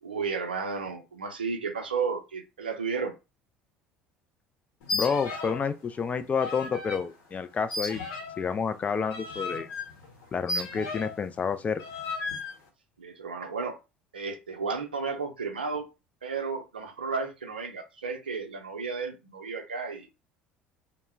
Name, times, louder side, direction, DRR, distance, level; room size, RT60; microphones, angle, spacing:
voice 1, 0.0-3.1 13.0-13.8 14.1-15.9 16.2-20.1, right 5 dB, 85° right, 0.5 m, -33 dB
sound 1, 4.8-5.7 6.0-7.0 7.7-11.3 11.8-12.5, left 3 dB, 65° left, 1.0 m, -35 dB
voice 2, 4.9-8.0 8.4-9.7 10.3-11.8, left 6 dB, 30° left, 0.4 m, -29 dB
2.1 x 2.1 x 3.2 m
hypercardioid pair, 65°, 5 cm